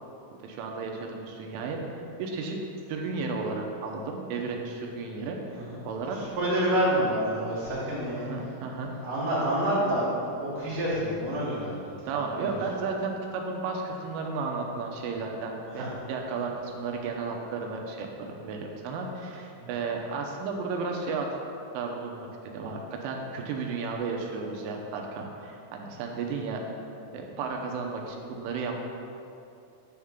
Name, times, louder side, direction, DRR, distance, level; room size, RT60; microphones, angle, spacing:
voice 1, 0.4-1.8 2.2-2.6 2.9-5.4 5.8-6.2 8.2-8.9 12.1-21.3 21.7-26.6 27.1-28.8, right 4 dB, 85° right, 1 dB, 3.2 m, -33 dB
voice 2, 5.5-8.3 8.9-11.9 12.2-12.5 15.7-15.9 19.6-19.7, right 1 dB, 60° right, -10 dB, 3.4 m, -28 dB
10.5 x 3.6 x 7.1 m, 2.6 s
omnidirectional pair, 5.8 m